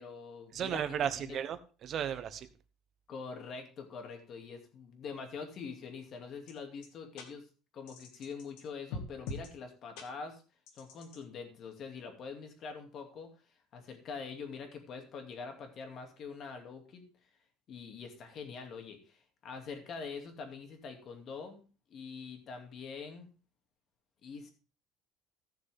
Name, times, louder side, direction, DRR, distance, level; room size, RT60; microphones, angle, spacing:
voice 1, 0.0-0.8 1.2-1.4 3.1-7.5 7.7-10.4 10.7-13.3 13.7-17.0 17.7-21.6 21.9-23.3 24.2-24.5, left 5 dB, 45° left, 4 dB, 2.5 m, -44 dB
voice 2, 0.5-2.5, right 9 dB, 45° right, 12 dB, 1.0 m, -34 dB
sound 1, 6.5-6.6 6.8-6.9 7.2-7.3 7.9-8.6 8.9-9.5 10.0-10.1 10.7-11.2, left 3 dB, 80° left, 2.2 m, -42 dB
15.5 x 6.7 x 3.6 m, 0.35 s
cardioid pair, 140°, 0 cm